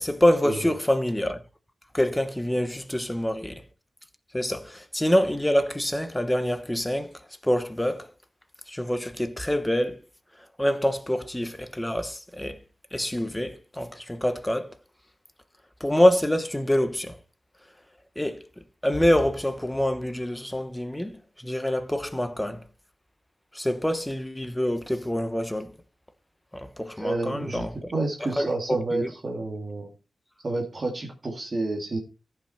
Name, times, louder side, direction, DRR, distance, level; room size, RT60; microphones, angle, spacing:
voice 1, 0.0-1.4 1.9-3.6 4.3-7.1 7.4-8.1 8.7-10.0 10.6-12.6 12.9-14.7 15.8-17.2 18.2-18.4 18.8-22.6 23.5-25.8 26.5-27.9 28.2-29.1, equal, 10° left, 1.0 m, -26 dB
voice 2, 27.0-27.7 27.9-29.9 30.4-32.0, right 2 dB, 35° right, 2.1 m, -29 dB
14.0 x 6.0 x 4.2 m
wide cardioid pair, 135°, 0 cm